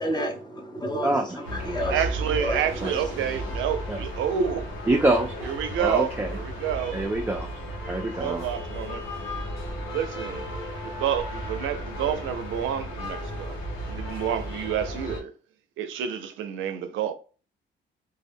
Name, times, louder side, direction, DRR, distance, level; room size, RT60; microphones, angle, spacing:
voice 1, 0.0-2.0 2.4-3.6, equal, 20° left, 0.7 m, -31 dB
voice 2, 1.0-1.9 2.8-2.9 3.9-4.0 4.9-5.5 5.8-6.3 6.9-7.5 7.9-8.5, right 2 dB, 10° right, 0.3 m, -26 dB
sound 1, 1.4-15.2, equal, 90° left, 0.8 m, -34 dB
voice 3, 1.9-4.7 5.4-7.0 8.2-9.0 9.9-10.5 10.8-13.6 13.9-15.3 15.8-17.1, right 8 dB, 80° right, 0.4 m, -29 dB
2.2 x 2.0 x 3.4 m
cardioid pair, 90°, 20 cm